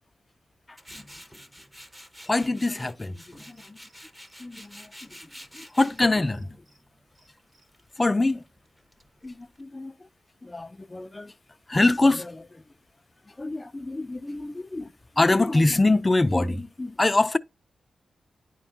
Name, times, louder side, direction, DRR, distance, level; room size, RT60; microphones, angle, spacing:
Tools, 0.8-9.6, equal, 10° right, 0.7 m, -48 dB
voice 1, 2.3-3.8 4.4-4.9 5.5-6.6 8.0-8.4 9.2-9.9 10.4-11.3 11.7-12.6 13.4-17.4, left 2 dB, 25° left, 0.3 m, -24 dB
Cricket, 3.5-4.7 4.9-5.0 5.3-6.8 7.1-7.6, right 2 dB, 70° right, 2.5 m, -63 dB
9.9 x 4.3 x 2.5 m
cardioid pair, 70°, 0 cm